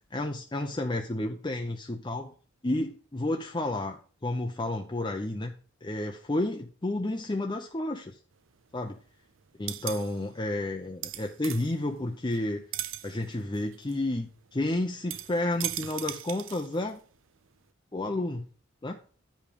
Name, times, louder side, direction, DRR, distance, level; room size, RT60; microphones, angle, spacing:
voice 1, 0.1-2.3 2.6-5.5 5.8-8.2 8.7-9.0 9.6-12.6 13.0-17.0 17.9-18.5 18.8-19.0, left 1 dB, 25° left, 2 dB, 0.7 m, -31 dB
sound 1, 8.3-9.1 9.4-12.4 12.7-17.2 17.5-17.6, right 13 dB, 80° right, 0.6 m, -39 dB
10.5 x 5.0 x 5.3 m, 0.41 s
head